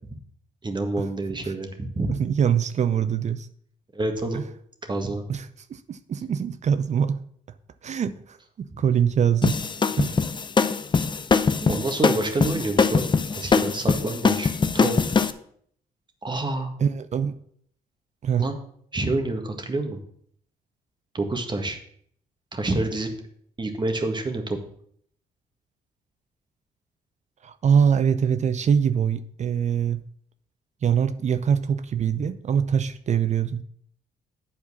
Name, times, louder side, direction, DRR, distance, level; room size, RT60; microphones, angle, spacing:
voice 1, 0.6-2.1 3.9-4.4 4.9-5.2 8.7-8.8 11.7-13.0 13.3-14.5 14.7-15.1 16.2-16.7 18.4-18.6 18.9-20.0 21.1-21.8 22.5-23.1 23.6-24.6, right 2 dB, 30° right, 5 dB, 1.7 m, -27 dB
voice 2, 2.1-3.5 4.3-4.4 5.3-7.2 7.8-9.6 10.0-10.2 11.6-11.9 16.8-17.4 18.2-18.5 27.4-30.0 30.8-33.6, right 7 dB, 45° right, 13 dB, 0.6 m, -23 dB
sound 1, 9.4-15.3, left 5 dB, 30° left, 0.6 m, -22 dB
8.5 x 4.5 x 7.1 m, 0.63 s
supercardioid pair, 70°, 16 cm